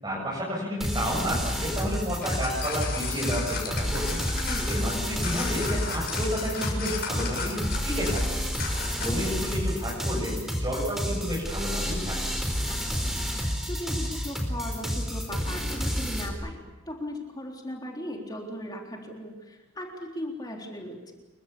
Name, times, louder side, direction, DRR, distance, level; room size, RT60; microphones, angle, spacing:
voice 1, 0.0-4.2 4.6-8.4 9.0-12.2, equal, 20° right, -5 dB, 7.5 m, -31 dB
sound 1, 0.8-16.3, equal, ahead, 4.4 m, -30 dB
sound 2, 2.2-9.4, left 5 dB, 50° left, 6.9 m, -35 dB
voice 2, 12.7-21.1, left 1 dB, 20° left, 0 dB, 3.8 m, -38 dB
29.0 x 24.0 x 7.0 m, 1.1 s
head